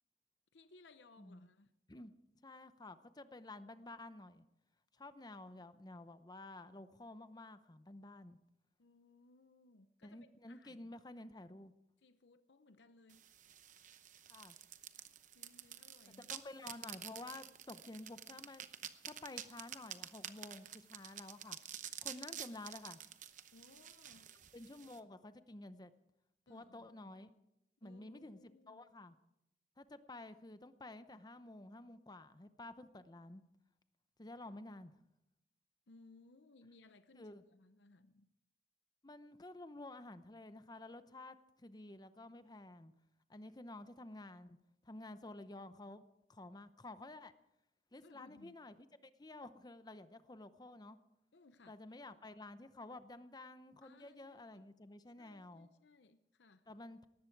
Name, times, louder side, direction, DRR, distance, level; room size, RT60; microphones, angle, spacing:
voice 1, 0.5-1.7 8.8-10.9 12.0-13.3 15.3-17.1 23.5-24.3 26.5-27.1 27.8-28.8 35.9-38.3 48.0-48.6 51.3-51.8 53.8-54.6 55.2-56.7, left 3 dB, 80° left, 10 dB, 0.8 m, -64 dB
voice 2, 2.4-4.4 4.9-8.4 10.0-11.7 14.3-14.6 16.1-18.7 19.0-21.6 22.0-23.0 24.5-25.9 26.5-27.3 27.8-29.2 29.8-33.4 34.2-35.0 37.1-37.4 39.0-42.9 43.3-44.6 44.8-47.3 47.9-51.0 51.7-55.7 56.7-57.1, left 2 dB, 25° left, 12 dB, 0.8 m, -52 dB
sound 1, 13.1-25.0, right 10 dB, 45° right, 0.9 m, -50 dB
18.5 x 14.5 x 4.7 m, 0.84 s
head